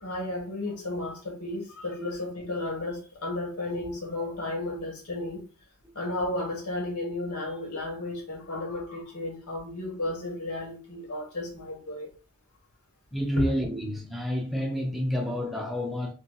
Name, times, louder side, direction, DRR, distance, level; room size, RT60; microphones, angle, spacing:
voice 1, 0.0-5.4 6.0-12.1, left 2 dB, 85° left, 1.2 m, -33 dB
voice 2, 13.1-16.1, equal, ahead, 0.5 m, -29 dB
3.3 x 2.8 x 2.2 m
head